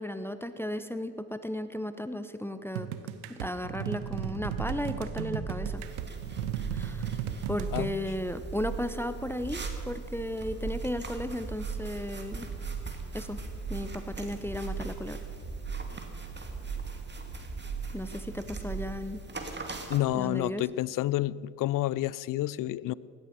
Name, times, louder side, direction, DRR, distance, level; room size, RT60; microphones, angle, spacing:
voice 1, 0.0-2.9 3.3-5.8 6.7-7.1 7.5-12.5 13.1-13.4 13.7-15.2 17.9-19.2 20.1-20.6, left 1 dB, 5° left, 11 dB, 0.8 m, -35 dB
sound 1, 2.7-7.9, right 10 dB, 90° right, 0.8 m, -36 dB
sound 2, 4.0-18.9, right 5 dB, 45° right, 3.5 m, -39 dB
sound 3, 5.8-20.0, right 3 dB, 25° right, 2.2 m, -44 dB
voice 2, 19.9-22.9, left 15 dB, 50° left, 21 dB, 0.5 m, -29 dB
17.0 x 11.5 x 6.1 m, 2.5 s
hypercardioid pair, 55°, 41 cm